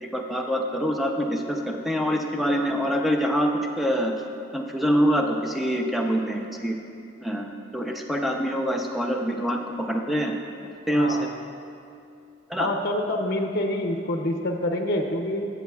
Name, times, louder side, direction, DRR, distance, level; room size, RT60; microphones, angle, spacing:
voice 1, 0.0-4.1 4.5-6.7 7.2-10.3 10.9-11.3 12.5-12.7, equal, ahead, 1 dB, 0.6 m, -25 dB
voice 2, 11.0-11.3 12.6-15.5, left 1 dB, 55° left, 3 dB, 0.6 m, -26 dB
16.5 x 7.2 x 2.3 m, 2.6 s
head